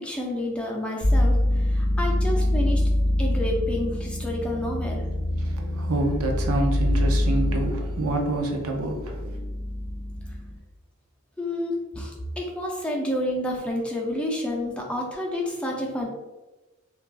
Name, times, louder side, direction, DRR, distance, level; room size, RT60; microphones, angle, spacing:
voice 1, 0.0-2.8 3.2-5.4 11.4-16.1, left 1 dB, 5° left, -2 dB, 0.4 m, -29 dB
sound 1, 1.0-10.6, left 1 dB, 45° right, 0.9 m, -25 dB
voice 2, 5.4-9.4, right 2 dB, 85° right, 2 dB, 0.5 m, -27 dB
3.3 x 2.3 x 2.4 m, 1.1 s
head